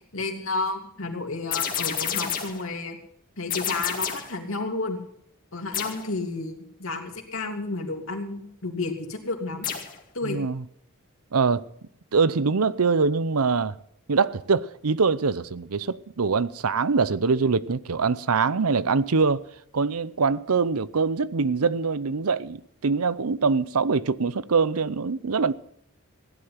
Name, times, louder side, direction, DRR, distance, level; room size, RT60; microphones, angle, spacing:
voice 1, 0.1-3.0 3.4-5.0 5.5-9.7 10.1-10.4, left 3 dB, 65° left, 2.8 m, -31 dB
sound 1, 1.5-2.7 3.5-4.4 5.7-6.1 9.6-10.0, left 8 dB, 40° left, 2.1 m, -29 dB
voice 2, 10.2-10.6 11.3-11.6 12.1-13.7 14.1-19.4 19.7-25.5, right 4 dB, 90° right, 0.7 m, -23 dB
16.5 x 11.0 x 5.9 m
head